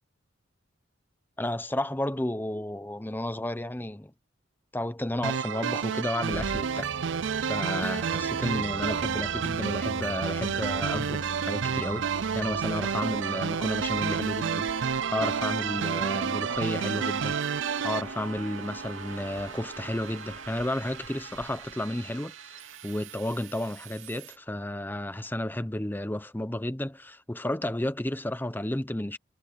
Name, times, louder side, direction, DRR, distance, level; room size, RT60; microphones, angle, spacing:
voice 1, 1.4-4.1 4.7-6.9 7.5-29.2, left 1 dB, 10° left, 0.9 m, -32 dB
sound 1, 5.2-18.0, right 7 dB, 65° right, 0.5 m, -30 dB
sound 2, 6.3-24.4, right 2 dB, 85° right, 2.6 m, -39 dB
Car, 13.6-21.7, left 2 dB, 85° left, 7.2 m, -56 dB
head